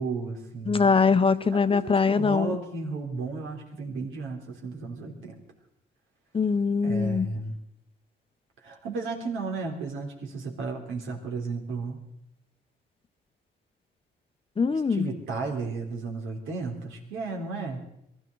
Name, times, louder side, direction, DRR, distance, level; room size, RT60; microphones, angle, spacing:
voice 1, 0.0-0.9 1.5-5.4 6.8-7.6 8.6-12.0 14.7-17.8, right 4 dB, 80° right, 1 dB, 3.4 m, -34 dB
voice 2, 0.7-2.6 6.3-7.3 14.6-15.1, left 5 dB, 25° left, 12 dB, 0.8 m, -22 dB
23.0 x 14.0 x 3.9 m, 0.78 s
cardioid pair, 90°, 20 cm